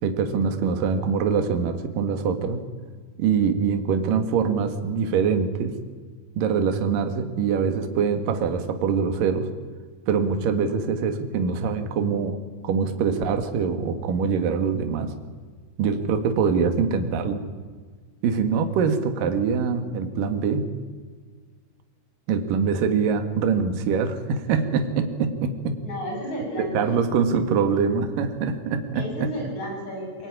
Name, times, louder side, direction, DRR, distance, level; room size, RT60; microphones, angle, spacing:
voice 1, 0.0-2.6 3.2-5.8 6.4-9.5 10.1-12.4 12.6-15.1 15.8-17.4 18.2-20.7 22.3-25.8 26.6-29.3, right 6 dB, 55° right, 7 dB, 2.9 m, -24 dB
voice 2, 25.8-27.0 28.9-30.3, equal, 35° left, -1 dB, 8.7 m, -32 dB
23.0 x 20.5 x 10.0 m, 1.5 s
omnidirectional pair, 5.7 m